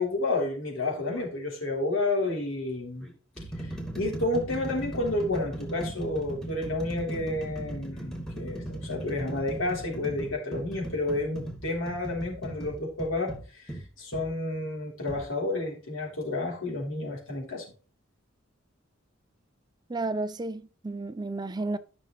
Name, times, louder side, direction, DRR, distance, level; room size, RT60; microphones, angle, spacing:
voice 1, 0.0-3.1 3.6-17.6, left 2 dB, 75° left, 3.8 m, -30 dB
sound 1, 1.1-1.3 2.2-2.4 3.0-14.3 15.1-15.3, right 1 dB, 5° left, 2.2 m, -38 dB
voice 2, 19.9-21.8, right 2 dB, 20° right, 0.4 m, -32 dB
13.5 x 6.2 x 3.3 m
head